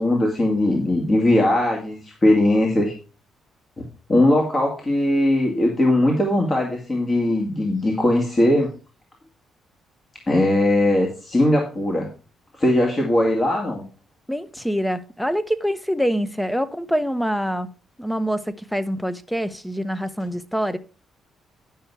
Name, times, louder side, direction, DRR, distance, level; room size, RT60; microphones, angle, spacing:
voice 1, 0.0-3.0 3.8-8.7 10.3-12.1 12.6-13.8, left 1 dB, 30° left, 2.1 m, -20 dB
voice 2, 14.3-17.7 18.0-20.8, equal, 5° left, 0.8 m, -25 dB
10.5 x 5.6 x 4.6 m
cardioid pair, 90°, 0 cm